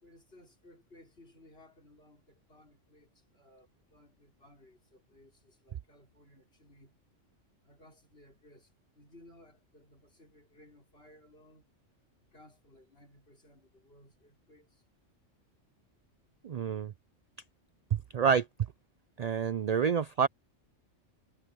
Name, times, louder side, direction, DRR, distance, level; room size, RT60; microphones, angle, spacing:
voice 1, 0.0-6.9 7.6-8.7 8.9-11.6 12.3-14.8, left 1 dB, 50° left, 5.4 m, -59 dB
voice 2, 16.4-16.9 17.9-18.5 19.2-20.3, right 7 dB, 75° right, 0.3 m, -28 dB
omnidirectional pair, 1.3 m